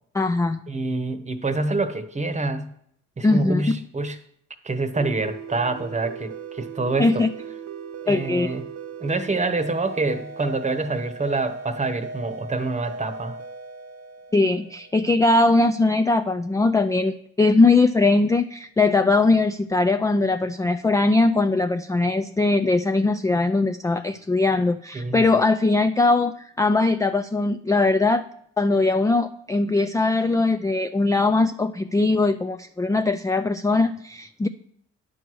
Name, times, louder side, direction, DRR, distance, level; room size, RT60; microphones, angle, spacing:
voice 1, 0.1-0.6 3.2-3.6 7.0-7.3 8.1-8.5 14.3-28.3 28.6-34.5, left 3 dB, 10° left, 8 dB, 0.3 m, -20 dB
voice 2, 0.7-2.7 3.2-4.2 4.6-7.2 8.0-8.6 9.0-13.4 24.9-25.2, right 3 dB, 25° right, 10 dB, 1.0 m, -26 dB
sound 1, 4.9-15.3, right 4 dB, 60° right, 0.8 m, -38 dB
10.0 x 4.7 x 6.2 m, 0.70 s
cardioid pair, 90°, 30 cm